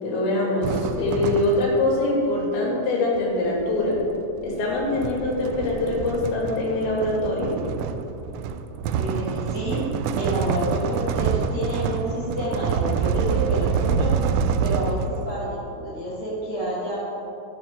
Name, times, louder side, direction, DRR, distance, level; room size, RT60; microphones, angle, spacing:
voice 1, 0.0-4.0 4.4-7.6, left 2 dB, 85° left, -4 dB, 4.9 m, -23 dB
sound 1, 0.6-1.9 3.2-15.4, right 6 dB, 85° right, 3.1 m, -27 dB
voice 2, 8.9-9.8 10.2-14.1 14.6-15.0 15.2-17.0, right 1 dB, 40° right, -8 dB, 2.2 m, -29 dB
16.0 x 8.8 x 3.6 m, 2.9 s
omnidirectional pair, 5.8 m